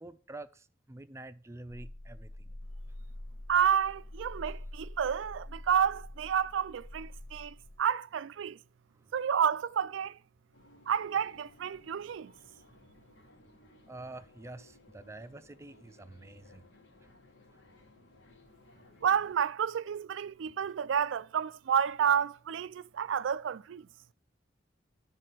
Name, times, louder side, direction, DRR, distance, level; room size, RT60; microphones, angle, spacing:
voice 1, 0.0-2.6 8.9-9.1 13.9-16.6 17.5-17.6, right 2 dB, 15° right, 0.4 m, -47 dB
sound 1, 1.7-7.7, left 1 dB, 65° left, 0.8 m, -45 dB
voice 2, 3.5-8.6 9.1-10.2 10.9-12.3 19.0-23.9, right 8 dB, 85° right, 0.4 m, -30 dB
sound 2, 10.5-19.3, left 2 dB, 90° left, 1.7 m, -60 dB
11.5 x 3.8 x 6.0 m
head